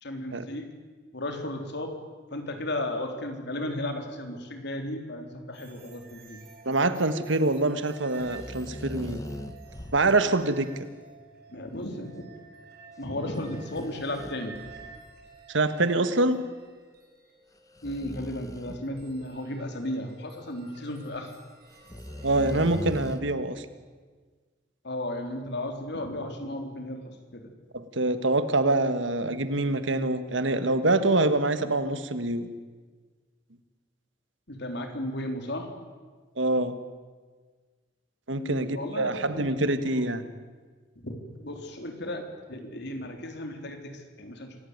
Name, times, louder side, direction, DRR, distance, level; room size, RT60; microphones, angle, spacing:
voice 1, 0.0-0.7 1.1-2.0 2.3-6.4 11.5-12.3 13.0-14.6 17.8-21.3 24.8-27.5 34.5-35.7 38.3-40.1 41.0-44.6, left 1 dB, 65° left, 5 dB, 3.6 m, -35 dB
sound 1, 5.5-22.7, right 5 dB, 55° right, 6.1 m, -52 dB
voice 2, 6.6-9.2 9.9-10.7 15.5-16.4 22.2-23.6 27.7-32.5 36.4-36.8 38.3-40.2, right 2 dB, 75° right, 11 dB, 1.7 m, -25 dB
sound 2, 8.2-10.2 13.6-15.2 15.9-16.0 17.8-19.4 21.1-21.2 21.9-23.2, equal, 20° left, 1.4 m, -39 dB
26.5 x 17.5 x 9.6 m, 1.5 s
head